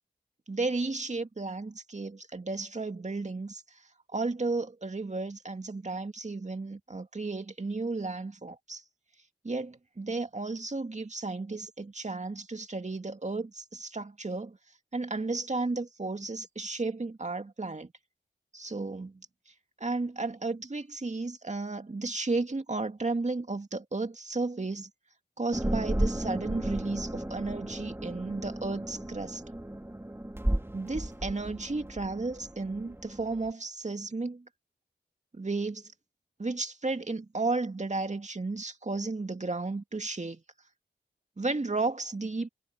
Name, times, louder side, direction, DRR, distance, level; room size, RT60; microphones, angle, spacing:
voice 1, 0.5-3.6 4.1-8.8 9.4-14.6 14.9-17.9 18.5-19.1 19.8-24.9 25.4-29.4 30.7-34.4 35.4-35.9 36.4-40.4 41.4-42.5, right 3 dB, 40° right, 2.3 m, -33 dB
sound 1, 25.5-33.5, right 1 dB, 15° right, 3.1 m, -34 dB
cardioid pair, 45°, 18 cm